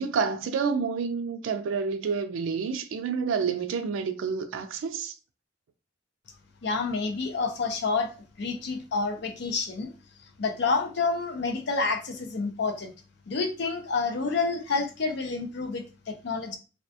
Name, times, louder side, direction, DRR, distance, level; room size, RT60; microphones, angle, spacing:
voice 1, 0.0-5.1, right 5 dB, 85° right, 0.3 m, -29 dB
voice 2, 6.6-8.1 8.4-9.9 10.4-12.9 13.3-16.6, left 4 dB, 60° left, 0.5 m, -28 dB
2.3 x 2.1 x 2.7 m
head